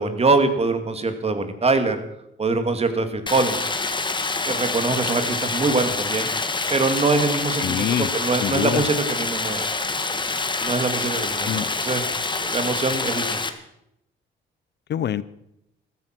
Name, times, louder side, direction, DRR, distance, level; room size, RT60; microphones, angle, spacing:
voice 1, 0.0-2.0 2.4-3.7 4.4-6.3 6.7-9.7 10.6-12.0 12.4-13.4, right 3 dB, 30° right, 8 dB, 2.4 m, -23 dB
Stream, 3.3-13.5, left 3 dB, 25° left, 1.6 m, -26 dB
voice 2, 7.6-8.1 8.4-8.9 11.4-11.7 14.9-15.2, left 10 dB, 60° left, 17 dB, 0.7 m, -25 dB
15.0 x 14.5 x 6.1 m, 0.78 s
cardioid pair, 90°, 20 cm